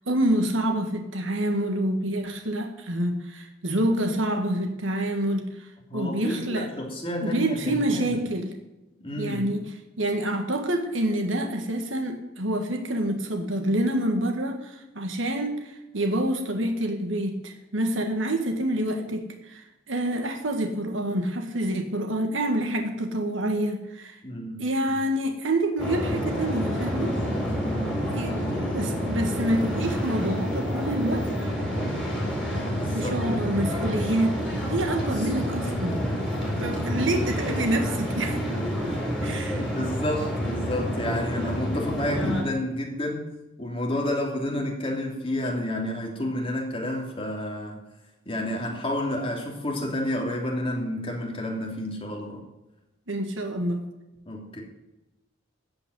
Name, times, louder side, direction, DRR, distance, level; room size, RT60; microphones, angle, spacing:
voice 1, 0.1-6.7 7.2-8.5 9.2-24.2 24.6-27.2 28.1-28.4 28.7-31.3 32.9-34.4 34.7-36.0 36.6-38.4 39.2-39.7 53.1-53.9, right 1 dB, 85° right, 4 dB, 1.7 m, -27 dB
voice 2, 5.9-8.2 9.0-9.4 24.2-25.0 27.6-28.6 32.7-33.2 39.6-43.3 43.6-47.8 48.2-52.4 54.3-54.6, left 1 dB, 30° left, 0 dB, 2.8 m, -30 dB
sound 1, 25.8-42.4, equal, 5° left, 4.3 m, -28 dB
15.0 x 5.3 x 9.7 m, 0.98 s
head